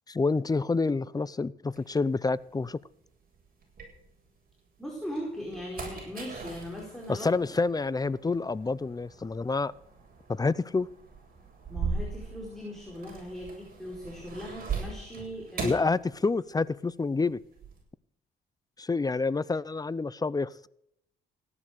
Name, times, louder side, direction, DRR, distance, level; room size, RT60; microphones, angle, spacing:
voice 1, 0.1-2.8 7.1-9.7 10.3-10.9 15.6-17.4 18.8-20.7, left 3 dB, 20° left, 0.6 m, -28 dB
sound 1, 1.7-4.5 5.0-16.7 17.0-17.8, right 4 dB, 45° right, 7.8 m, -40 dB
voice 2, 4.8-7.3 11.7-15.8, equal, ahead, 4.6 m, -39 dB
16.5 x 11.0 x 6.6 m
cardioid pair, 90°, 20 cm